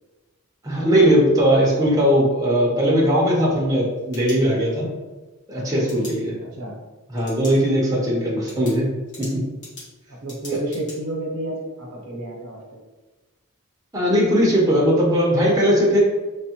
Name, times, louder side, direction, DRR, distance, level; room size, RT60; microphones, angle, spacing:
voice 1, 0.6-4.9 5.5-6.3 7.1-8.9 9.2-9.4 10.5-10.6 13.9-16.0, equal, 15° right, -4 dB, 0.6 m, -19 dB
sound 1, 3.9-4.9 5.9-6.1 7.2-7.6 8.0-8.1 8.5-11.0, left 2 dB, 55° left, 1.3 m, -41 dB
voice 2, 6.4-6.8 10.2-12.8, right 1 dB, 75° right, -2 dB, 0.7 m, -30 dB
3.4 x 2.1 x 2.8 m, 1.2 s
head